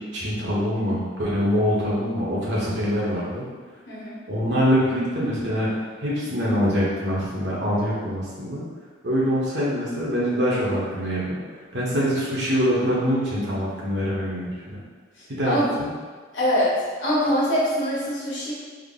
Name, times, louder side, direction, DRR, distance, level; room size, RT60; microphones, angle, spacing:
voice 1, 0.1-3.4 4.3-5.7 6.0-8.6 9.0-11.4 11.7-14.8 15.3-15.9, equal, 65° right, -6 dB, 0.9 m, -24 dB
voice 2, 3.9-4.2 15.4-15.6 16.3-16.7 17.0-18.5, equal, 80° left, -8 dB, 1.2 m, -23 dB
3.6 x 2.1 x 3.7 m, 1.5 s
head